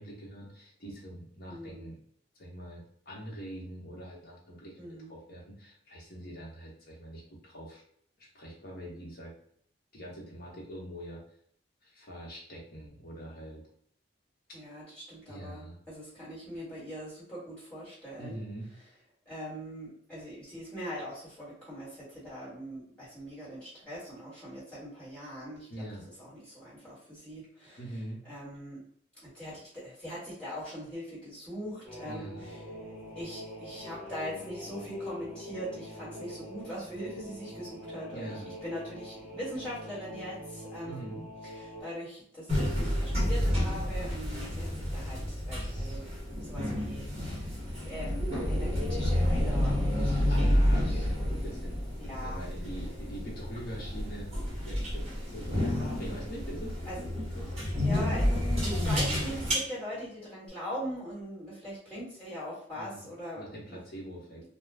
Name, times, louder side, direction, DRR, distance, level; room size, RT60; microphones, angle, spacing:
voice 1, 0.0-2.0 2.3-7.8 8.2-9.3 9.9-11.2 11.8-13.6 15.3-15.8 18.2-18.7 25.7-26.0 27.8-28.2 32.0-32.4 38.1-38.5 40.8-41.2 50.0-51.8 52.1-54.3 54.6-55.1 55.3-57.1 57.4-57.6 62.7-63.1 63.4-64.4, right 1 dB, 50° left, -4 dB, 0.8 m, -44 dB
voice 2, 1.5-1.8 4.8-5.1 14.5-18.4 19.2-25.7 26.0-27.8 28.2-28.8 29.2-32.6 33.1-41.1 41.4-46.0 46.4-50.6 50.8-51.1 52.0-52.4 55.5-56.0 56.8-57.0 57.8-63.4 63.7-63.8, equal, 5° left, -10 dB, 1.4 m, -41 dB
sound 1, 31.8-41.8, left 1 dB, 15° right, 0.8 m, -44 dB
sound 2, 42.5-59.5, left 1 dB, 35° right, 1.1 m, -30 dB
2.3 x 2.2 x 3.3 m, 0.63 s
head